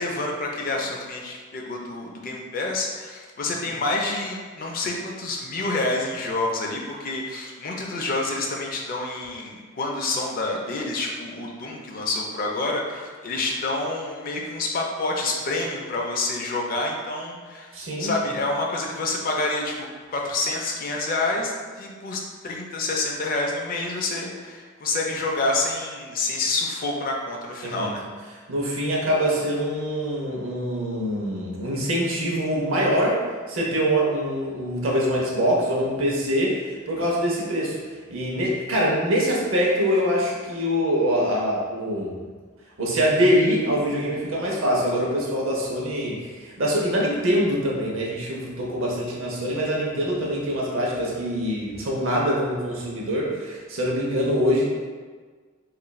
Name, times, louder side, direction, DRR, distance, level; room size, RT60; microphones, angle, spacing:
voice 1, 0.0-17.7 18.0-21.5 21.8-28.0, left 2 dB, 45° left, 0 dB, 0.4 m, -28 dB
voice 2, 17.7-18.2 27.6-27.9 28.5-33.2 33.5-37.8 38.1-42.2 42.8-54.6, equal, 70° right, -3 dB, 0.6 m, -24 dB
3.0 x 2.4 x 2.2 m, 1.5 s
head